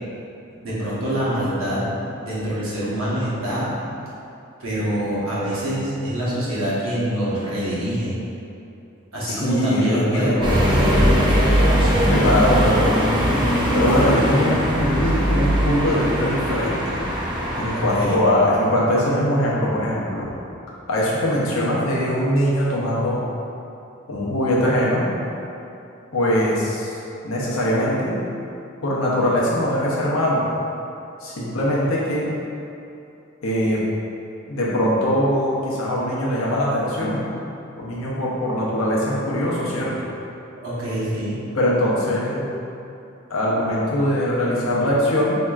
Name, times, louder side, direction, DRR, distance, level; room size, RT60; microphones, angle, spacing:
voice 1, 0.6-1.9 2.2-3.7 4.6-8.1 9.1-12.0 17.7-18.2 40.6-41.4, equal, 75° right, -8 dB, 1.1 m, -25 dB
voice 2, 9.2-10.3 12.0-13.0 13.7-17.0 17.6-20.3 20.9-23.2 24.1-25.1 26.1-27.0 27.2-28.1 28.8-30.4 31.2-32.3 33.4-33.8 34.5-37.3 37.8-39.9 41.5-42.4 43.3-45.4, equal, 70° left, -6 dB, 0.8 m, -21 dB
sound 1, 10.4-18.2, equal, 20° right, 0.4 m, -20 dB
4.4 x 2.8 x 2.4 m, 2.8 s
head